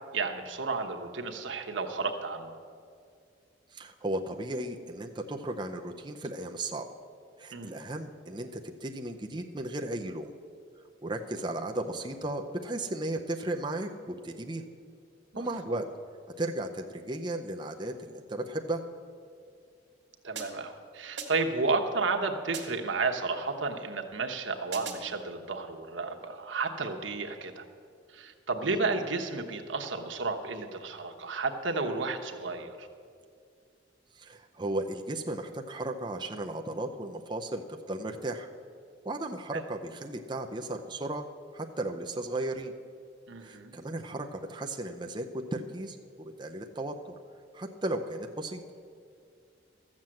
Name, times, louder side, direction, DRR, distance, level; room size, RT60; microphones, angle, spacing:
voice 1, 0.1-2.6 7.5-7.8 15.3-15.4 15.7-15.8 20.2-27.6 28.1-32.9 39.5-39.6 43.3-43.8, right 3 dB, 90° right, 4 dB, 1.1 m, -32 dB
voice 2, 3.7-6.9 7.4-10.3 11.0-14.6 15.4-15.9 16.4-18.8 28.6-28.8 34.1-38.5 39.0-41.2 41.5-42.7 43.4-47.0 47.5-48.6, right 1 dB, 25° right, 3 dB, 0.5 m, -35 dB
sound 1, 20.4-20.8 21.2-21.6 22.5-23.0 24.7-25.2, right 5 dB, 75° right, 1.5 m, -41 dB
13.0 x 7.4 x 7.6 m, 2.2 s
head